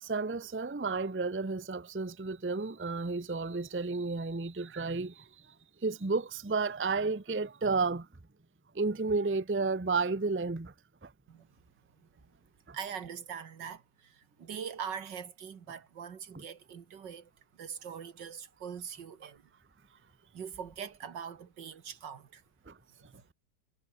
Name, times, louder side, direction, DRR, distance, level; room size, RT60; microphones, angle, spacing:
voice 1, 0.0-5.1 5.8-8.1 8.8-10.7 12.7-12.8 16.3-16.4, right 4 dB, 10° right, 0.6 m, -32 dB
voice 2, 12.7-19.5 20.3-22.4 23.0-23.2, right 7 dB, 75° right, 2.3 m, -43 dB
omnidirectional pair, 1.9 m